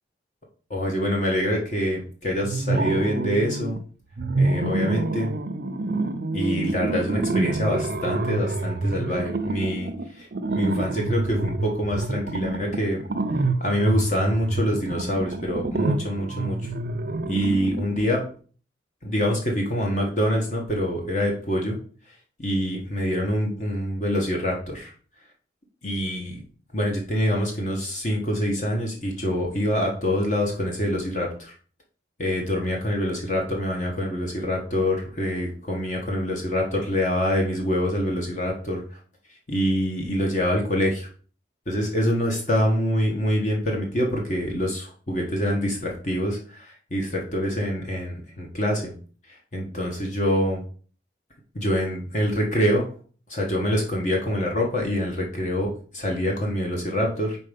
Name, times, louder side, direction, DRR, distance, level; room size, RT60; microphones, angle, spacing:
voice 1, 0.7-3.8 4.4-5.3 6.3-10.3 10.5-13.0 13.6-16.6 17.3-18.2 19.0-21.8 22.4-24.9 25.8-26.4 26.7-31.5 32.2-38.8 39.5-41.1 41.7-48.9 49.5-50.6 51.5-52.8 53.3-57.4, equal, 40° left, 0 dB, 1.3 m, -25 dB
sound 1, 2.4-3.8 4.2-18.1, right 2 dB, 55° right, 0.5 m, -27 dB
5.5 x 4.2 x 5.1 m, 0.42 s
head